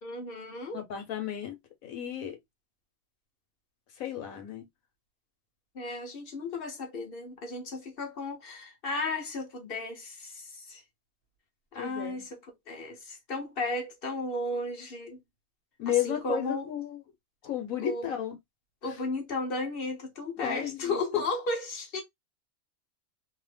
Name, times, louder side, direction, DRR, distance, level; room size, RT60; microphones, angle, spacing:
voice 1, 0.0-0.8 5.7-10.8 11.7-12.4 12.7-15.2 15.9-16.7 17.8-18.1 18.8-22.0, left 2 dB, 45° left, 1.2 m, -34 dB
voice 2, 0.7-2.4 4.0-4.6 11.7-12.3 15.8-17.0 17.4-18.4 20.4-21.2, left 11 dB, 80° left, 1.3 m, -33 dB
3.1 x 2.0 x 3.2 m
omnidirectional pair, 1.4 m